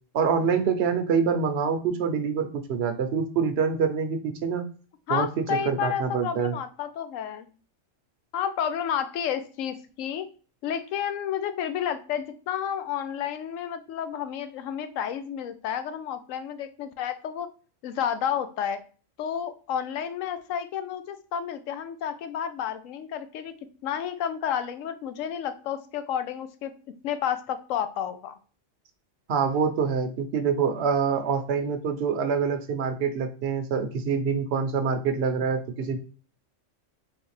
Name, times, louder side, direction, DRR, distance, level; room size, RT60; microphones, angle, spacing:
voice 1, 0.1-4.7 5.1-6.5 29.3-36.0, right 6 dB, 60° right, 6 dB, 0.9 m, -26 dB
voice 2, 5.1-7.5 8.3-10.3 10.6-17.5 17.8-18.8 19.2-23.5 23.8-26.7 27.0-28.4, left 9 dB, 90° left, 10 dB, 1.0 m, -31 dB
4.2 x 3.3 x 3.1 m, 0.39 s
omnidirectional pair, 1.3 m